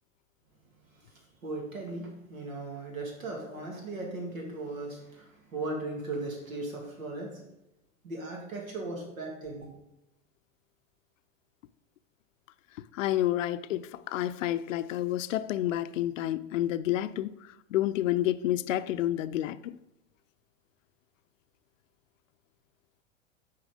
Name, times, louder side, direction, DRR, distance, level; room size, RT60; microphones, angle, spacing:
voice 1, 1.4-7.4 8.0-9.7, right 2 dB, 80° right, 0 dB, 2.3 m, -37 dB
voice 2, 12.9-17.3 17.7-19.8, left 13 dB, 70° left, 13 dB, 0.5 m, -29 dB
8.3 x 4.5 x 5.0 m, 0.88 s
hypercardioid pair, 95°, 40 cm